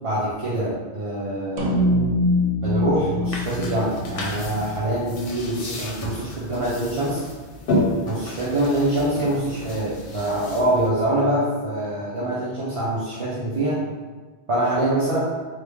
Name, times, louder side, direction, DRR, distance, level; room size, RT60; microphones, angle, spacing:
voice 1, 0.0-1.7 2.6-7.2 8.1-13.8 14.5-15.2, right 1 dB, 45° right, -8 dB, 0.4 m, -24 dB
sound 1, 1.6-6.1, left 1 dB, 75° right, 0.9 m, -25 dB
sound 2, 3.2-10.9, left 1 dB, 65° left, 0.8 m, -31 dB
3.1 x 2.1 x 3.4 m, 1.3 s
omnidirectional pair, 1.1 m